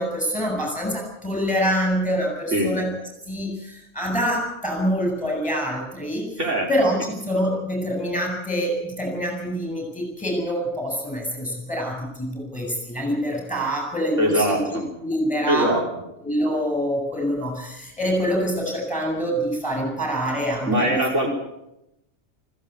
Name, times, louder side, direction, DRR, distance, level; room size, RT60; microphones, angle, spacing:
voice 1, 0.0-2.9 3.2-6.4 6.7-15.8 16.2-21.3, equal, 5° left, 1 dB, 8.0 m, -26 dB
voice 2, 6.4-6.7 14.2-14.9 15.5-15.8 20.7-21.3, right 1 dB, 85° right, 0 dB, 4.6 m, -21 dB
20.0 x 16.0 x 8.5 m, 0.86 s
omnidirectional pair, 1.2 m